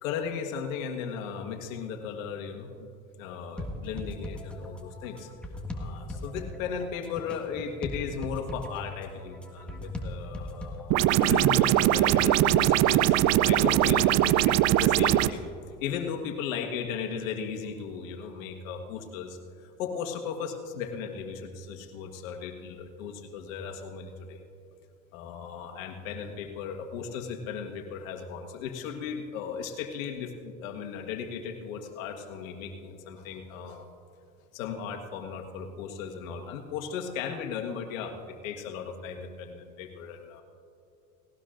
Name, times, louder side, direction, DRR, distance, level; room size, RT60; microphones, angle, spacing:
voice 1, 0.0-2.9 3.2-5.3 5.7-13.2 13.4-15.4 15.8-24.4 25.1-33.9 34.5-40.4, left 6 dB, 70° left, 3 dB, 1.7 m, -36 dB
sound 1, 3.6-12.0, left 1 dB, ahead, 1.6 m, -39 dB
sound 2, 10.9-15.3, right 14 dB, 40° right, 0.5 m, -21 dB
18.5 x 18.0 x 2.6 m, 2.6 s
hypercardioid pair, 90°, 41 cm